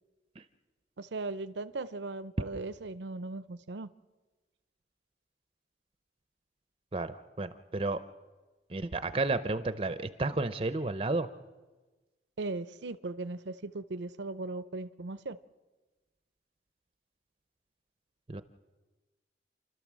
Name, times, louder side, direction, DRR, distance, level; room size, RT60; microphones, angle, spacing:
voice 1, 1.0-3.9 12.4-15.4, right 3 dB, 85° right, 0.6 m, -38 dB
voice 2, 6.9-8.0 8.7-11.3 18.3-18.4, right 2 dB, 30° right, 0.6 m, -32 dB
29.0 x 12.5 x 7.5 m
head